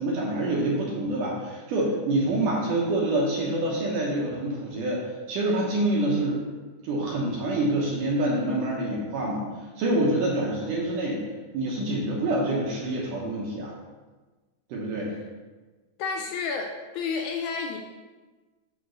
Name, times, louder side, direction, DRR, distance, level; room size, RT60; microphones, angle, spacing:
voice 1, 0.0-6.4 6.8-9.5 9.8-11.2 11.5-13.7 14.7-15.1, right 1 dB, 75° right, -3 dB, 2.5 m, -26 dB
voice 2, 16.0-17.8, left 5 dB, 85° left, 2 dB, 1.7 m, -30 dB
6.0 x 4.4 x 6.3 m, 1.3 s
omnidirectional pair, 4.0 m